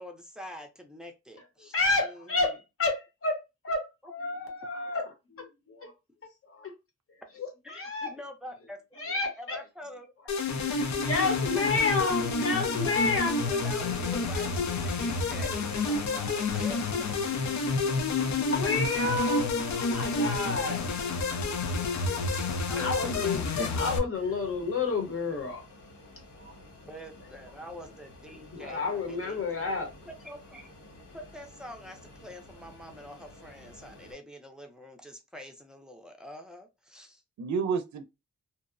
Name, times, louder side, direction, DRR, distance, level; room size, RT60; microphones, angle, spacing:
voice 1, 0.0-1.8 2.0-2.6 7.6-9.0 9.4-10.4 13.4-16.8 22.3-22.9 23.2-23.8 26.9-29.8 30.1-30.7 31.1-37.2, equal, 5° right, 0.5 m, -45 dB
voice 2, 1.6-5.9 6.5-6.7 7.4-8.1 9.0-9.6 10.5-13.3 18.6-20.8 22.8-25.6 26.4-26.5 28.5-29.9, left 3 dB, 50° left, 0.9 m, -30 dB
sound 1, 10.3-24.0, left 3 dB, 70° left, 0.6 m, -29 dB
voice 3, 19.0-19.5 23.1-23.2 23.6-23.9 37.4-38.0, right 5 dB, 75° right, 0.5 m, -32 dB
Fixed-wing aircraft airplane, 24.1-34.1, left 1 dB, 90° left, 1.5 m, -52 dB
2.7 x 2.0 x 2.4 m
wide cardioid pair, 140°, 29 cm